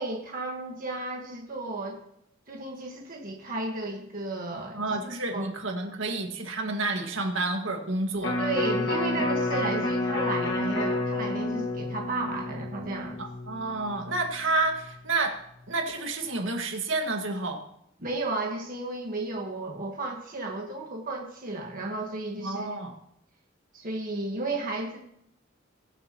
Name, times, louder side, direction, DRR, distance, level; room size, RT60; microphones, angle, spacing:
voice 1, 0.0-2.0 2.5-5.0 5.3-5.5 8.4-13.2 18.0-22.7 23.7-25.0, right 2 dB, 45° right, 0 dB, 1.5 m, -33 dB
voice 2, 4.7-8.4 13.2-15.4 15.7-17.6 22.4-22.9, right 2 dB, 80° right, 2 dB, 1.9 m, -30 dB
Electric guitar, 8.2-14.4 14.8-14.9, left 2 dB, 70° left, 1.7 m, -30 dB
22.5 x 7.7 x 3.0 m, 0.74 s
head